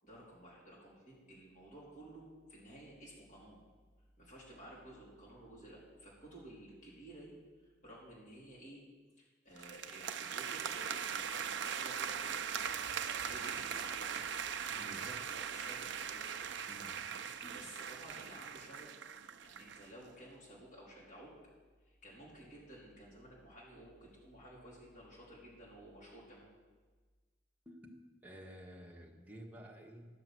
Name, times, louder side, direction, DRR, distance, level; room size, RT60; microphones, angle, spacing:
voice 1, 0.0-3.6 4.2-7.3 7.6-8.8 9.2-12.6 13.2-14.4 14.7-16.2 17.5-19.0 19.4-21.3 21.8-26.5, right 1 dB, 40° left, -5 dB, 3.7 m, -54 dB
sound 1, 9.6-19.9, right 7 dB, 65° right, 0.5 m, -40 dB
voice 2, 27.6-27.9 28.2-30.1, equal, 10° right, -2 dB, 1.3 m, -52 dB
11.0 x 6.8 x 7.8 m, 1.4 s
head